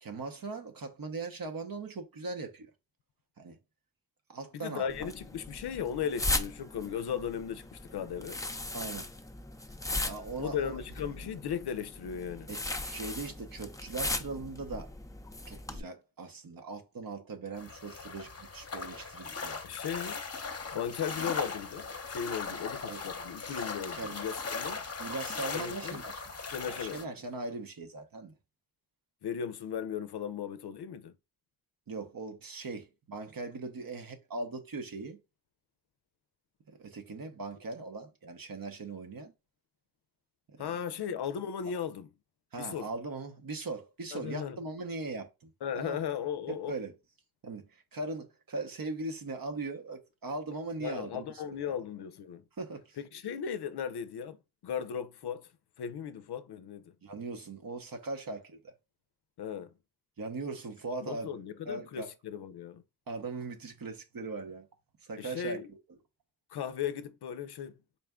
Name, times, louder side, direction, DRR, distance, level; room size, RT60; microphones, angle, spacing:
voice 1, 0.0-2.7 3.4-3.6 4.3-5.1 8.7-9.1 10.0-10.8 11.1-11.3 12.5-14.9 15.5-19.6 22.9-23.0 23.6-23.7 23.9-24.2 25.0-26.2 26.7-28.3 31.9-35.2 36.7-39.3 40.5-40.7 42.5-46.0 46.5-46.9 47.4-51.2 52.6-53.0 57.0-58.7 60.2-61.4 61.7-62.1 63.1-64.7 65.0-65.8, right 3 dB, 60° right, 0.8 m, -40 dB
voice 2, 4.5-8.4 10.4-12.5 19.6-20.2 20.7-24.8 25.5-26.0 26.5-27.0 29.2-31.1 40.6-42.1 42.6-42.9 44.1-44.6 45.6-46.7 50.8-52.4 53.0-55.5 55.8-56.9 59.4-59.7 61.0-62.8 65.2-65.7 66.5-67.8, left 8 dB, 85° left, 0.5 m, -37 dB
sound 1, 4.9-15.8, left 2 dB, 10° left, 0.5 m, -38 dB
sound 2, 17.6-27.0, left 4 dB, 40° left, 0.7 m, -39 dB
4.1 x 2.2 x 3.5 m
cardioid pair, 45°, 38 cm